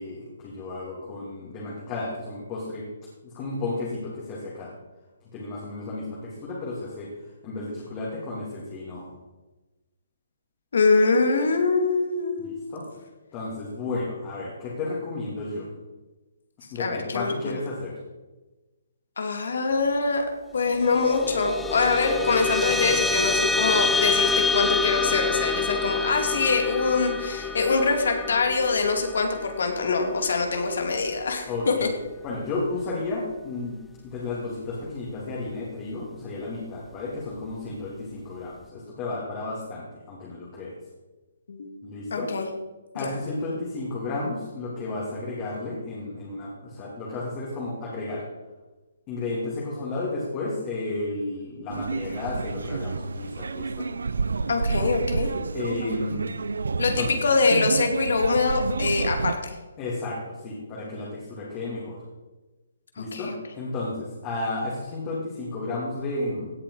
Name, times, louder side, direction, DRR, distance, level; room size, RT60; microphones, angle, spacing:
voice 1, 0.0-2.8 3.2-4.7 5.3-7.1 7.4-9.1 12.4-12.8 13.3-15.7 16.7-18.0 31.5-31.9 32.2-33.7 34.0-40.7 41.8-42.3 42.9-48.2 49.1-53.9 55.5-56.4 57.0-57.1 59.8-62.0 63.0-66.5, left 2 dB, 25° left, -4 dB, 2.7 m, -32 dB
voice 2, 10.7-12.5 16.8-17.6 19.2-20.2 20.5-31.9 41.5-41.7 42.1-42.5 42.9-43.2 54.5-55.3 56.8-59.6 63.0-63.3, left 4 dB, 70° left, 5 dB, 2.4 m, -24 dB
sound 1, 20.7-31.5, left 4 dB, 5° left, 0.6 m, -27 dB
sound 2, 51.7-59.3, right 4 dB, 85° right, 0.6 m, -29 dB
16.5 x 7.4 x 4.8 m, 1.2 s
hypercardioid pair, 155°, 0 cm